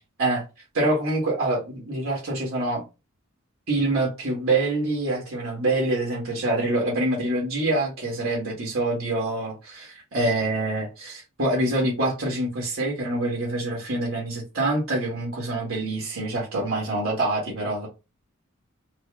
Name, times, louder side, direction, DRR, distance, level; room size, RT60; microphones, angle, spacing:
voice 1, 0.7-2.8 3.7-17.9, right 2 dB, 80° right, 1.5 m, -25 dB
4.2 x 2.0 x 3.5 m
head